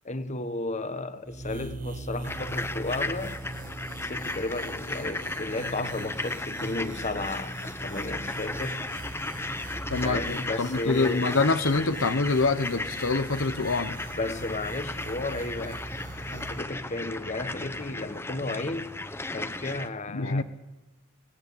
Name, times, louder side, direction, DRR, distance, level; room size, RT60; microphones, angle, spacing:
voice 1, 0.0-3.4 4.0-8.8 10.0-11.4 14.1-15.9 16.2-18.9 19.3-20.4, left 2 dB, 35° left, 1.4 m, -33 dB
Oscillating saw, 1.2-16.6, right 2 dB, 40° right, 1.1 m, -41 dB
sound 1, 2.2-19.9, left 2 dB, 10° left, 0.9 m, -35 dB
sound 2, 8.2-17.9, equal, 70° right, 7.1 m, -50 dB
voice 2, 9.9-14.0 20.1-20.4, left 3 dB, 70° left, 1.0 m, -25 dB
26.5 x 19.5 x 8.5 m
head